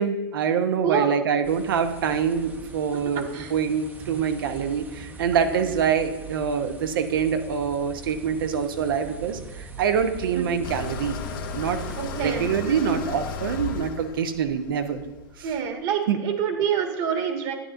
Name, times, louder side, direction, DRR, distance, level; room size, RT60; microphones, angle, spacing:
voice 1, 0.0-11.2 11.5-11.8 12.2-15.0 15.4-15.5 16.1-16.2, right 7 dB, 70° right, 8 dB, 0.9 m, -25 dB
sound 1, 1.4-12.3, right 4 dB, 15° right, 0.8 m, -42 dB
voice 2, 3.1-3.5 5.5-5.6 10.3-10.5 12.0-13.0 15.4-17.5, right 8 dB, 50° right, 2 dB, 1.8 m, -27 dB
sound 2, 10.6-15.6, left 5 dB, 65° left, 1.5 m, -34 dB
10.0 x 9.8 x 2.6 m, 1.1 s
hypercardioid pair, 105°, 12 cm